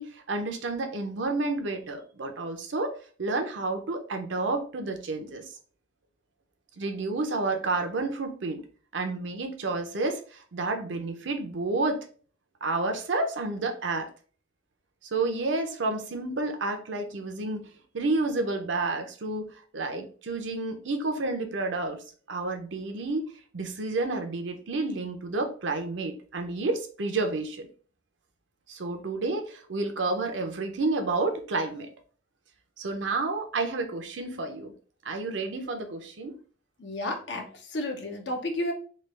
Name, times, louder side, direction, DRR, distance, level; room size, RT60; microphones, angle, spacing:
voice 1, 0.0-5.4 6.8-8.6 8.9-12.0 12.6-14.1 15.1-17.7 17.9-19.5 19.7-22.0 22.3-23.2 23.5-27.7 28.7-31.9 32.8-34.7 35.0-36.4, right 3 dB, 80° right, 5 dB, 0.6 m, -30 dB
voice 2, 36.8-38.7, left 1 dB, 70° left, 4 dB, 0.7 m, -32 dB
3.2 x 2.4 x 3.3 m, 0.42 s
head